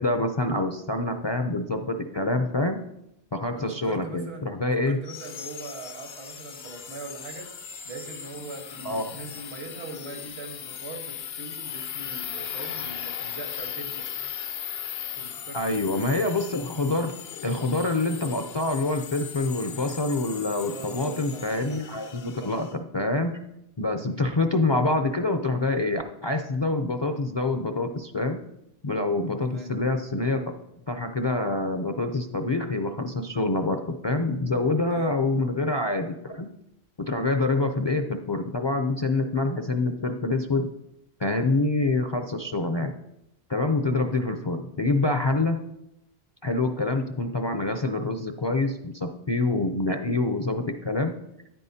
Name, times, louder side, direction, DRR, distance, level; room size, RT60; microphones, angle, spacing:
voice 1, 0.0-2.8 3.3-5.0 8.8-9.2 15.5-17.1 17.4-22.7 22.9-23.4 23.8-28.4 28.8-30.5 30.9-36.5 37.0-40.7 41.2-42.9 43.5-45.6 46.4-51.2, left 2 dB, 40° left, 5 dB, 0.4 m, -26 dB
voice 2, 3.6-7.5 7.8-14.1 15.2-16.1 20.7-21.8 22.4-22.5 24.1-24.3 29.4-29.7 34.8-35.1 44.0-44.1, right 3 dB, 75° right, 4 dB, 1.6 m, -41 dB
sound 1, 5.1-22.7, left 8 dB, 75° left, 0.9 m, -38 dB
10.0 x 9.2 x 2.7 m, 0.84 s
omnidirectional pair, 1.0 m